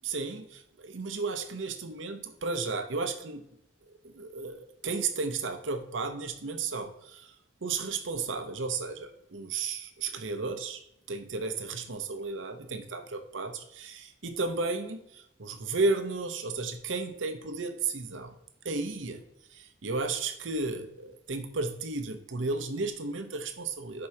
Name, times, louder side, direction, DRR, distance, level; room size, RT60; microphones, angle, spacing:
voice 1, 0.0-3.4 4.0-7.3 7.6-10.8 11.1-18.4 18.6-19.2 19.5-24.1, right 3 dB, 80° right, 8 dB, 0.9 m, -33 dB
11.0 x 4.7 x 2.9 m, 0.79 s
head